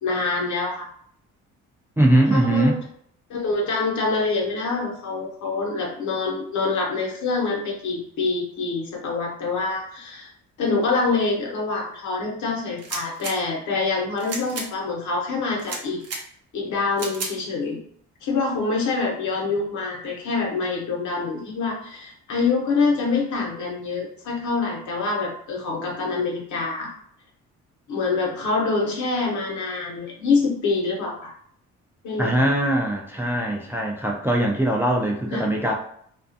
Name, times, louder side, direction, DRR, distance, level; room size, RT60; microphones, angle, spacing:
voice 1, 0.0-0.9 2.3-2.8 3.3-10.3 10.6-16.0 16.5-17.8 18.2-26.9 27.9-31.3 32.0-32.5 35.3-35.4, left 3 dB, 75° left, -1 dB, 0.9 m, -25 dB
voice 2, 2.0-2.8 32.2-35.7, right 1 dB, 10° right, -1 dB, 0.3 m, -21 dB
sound 1, 12.8-13.3 14.2-14.7 15.6-16.2 17.0-17.3, right 3 dB, 55° right, 0.7 m, -32 dB
2.4 x 2.3 x 2.6 m, 0.64 s
cardioid pair, 90°, 30 cm